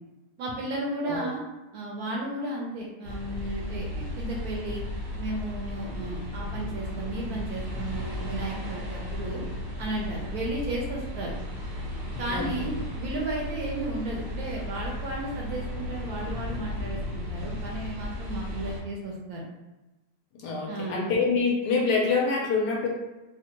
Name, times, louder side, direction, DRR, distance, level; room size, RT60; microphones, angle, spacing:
voice 1, 0.4-1.4 1.7-4.8 5.2-9.4 9.8-11.4 12.2-19.5 20.7-21.1, right 1 dB, 70° right, -2 dB, 1.0 m, -34 dB
sound 1, 3.0-18.8, left 1 dB, 20° right, 0.8 m, -35 dB
voice 2, 12.2-12.7 20.3-22.9, left 4 dB, 70° left, -1 dB, 1.1 m, -26 dB
3.4 x 2.0 x 2.9 m, 1.1 s
omnidirectional pair, 2.0 m